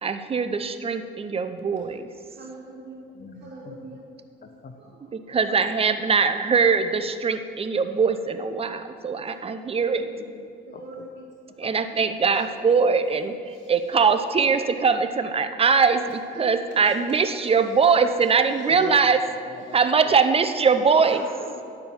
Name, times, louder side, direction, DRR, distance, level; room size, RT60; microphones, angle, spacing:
voice 1, 0.0-2.1 5.1-10.0 11.6-19.2 19.7-21.3, right 5 dB, 30° right, 9 dB, 0.6 m, -22 dB
voice 2, 2.3-3.1 3.4-4.1 4.8-5.2 5.6-5.8 9.6-10.1 10.7-11.2 11.5-11.6 11.9-12.0 16.3-16.8 19.7-19.8 21.0-21.6, right 3 dB, 60° right, -8 dB, 2.2 m, -43 dB
voice 3, 3.1-4.0 4.4-4.9 10.0-11.0 11.6-11.7 18.7-19.0 19.5-20.1, left 6 dB, 45° left, 6 dB, 0.9 m, -41 dB
10.0 x 4.5 x 7.0 m, 2.4 s
cardioid pair, 90°, 20 cm